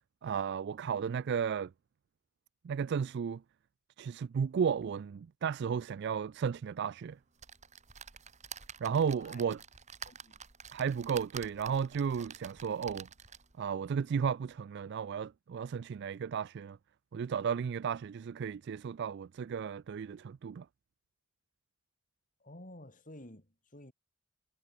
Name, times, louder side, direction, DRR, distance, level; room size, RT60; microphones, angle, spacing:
voice 1, 0.2-1.7 2.6-3.4 4.0-7.2 8.8-9.6 10.7-13.1 13.6-16.8 17.1-20.7, right 7 dB, 50° right, 0.3 m, -34 dB
sound 1, 7.4-13.6 14.2-14.3 14.5-14.6, right 7 dB, 30° right, 2.5 m, -49 dB
voice 2, 8.8-9.5 10.0-10.5 22.4-23.9, left 1 dB, 35° left, 3.6 m, -52 dB
head